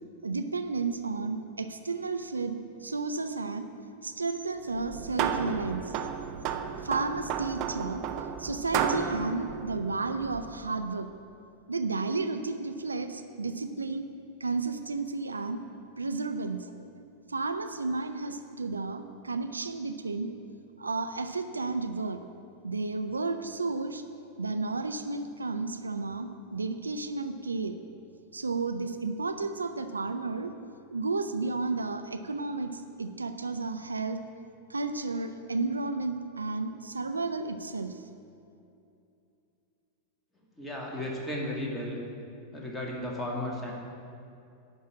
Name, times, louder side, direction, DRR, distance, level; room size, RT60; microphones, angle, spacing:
voice 1, 0.2-3.7 4.0-5.9 6.8-8.0 8.4-11.1 11.7-14.1 14.4-15.6 16.0-16.9 17.3-20.4 20.8-22.2 22.6-24.0 24.4-27.8 28.3-30.5 30.9-34.2 34.7-38.0, right 3 dB, 80° right, 8 dB, 0.5 m, -32 dB
sound 1, 4.7-10.6, right 8 dB, 40° right, 0.7 m, -33 dB
voice 2, 40.6-42.0 42.5-43.7, left 1 dB, 10° left, -3 dB, 2.2 m, -34 dB
10.5 x 5.6 x 8.6 m, 2.6 s
figure-of-eight pair, 90°, 0 cm